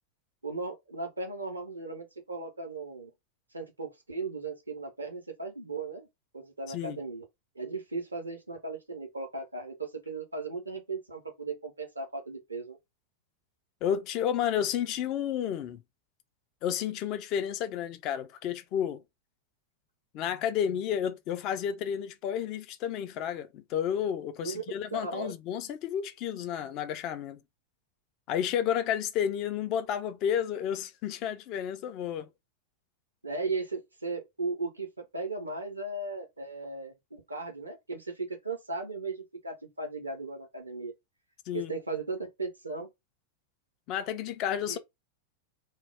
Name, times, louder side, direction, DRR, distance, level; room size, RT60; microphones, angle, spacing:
voice 1, 0.4-3.1 3.5-6.1 6.3-7.2 7.6-12.8 24.4-24.6 24.9-25.3 33.2-40.9 41.5-42.9 44.7-44.8, right 3 dB, 85° right, 0.6 m, -37 dB
voice 2, 6.7-7.0 13.8-15.8 16.6-19.0 20.1-27.4 28.3-32.3 41.5-41.7 43.9-44.8, left 9 dB, 40° left, 0.4 m, -31 dB
2.2 x 2.0 x 3.4 m
figure-of-eight pair, 90°, 0 cm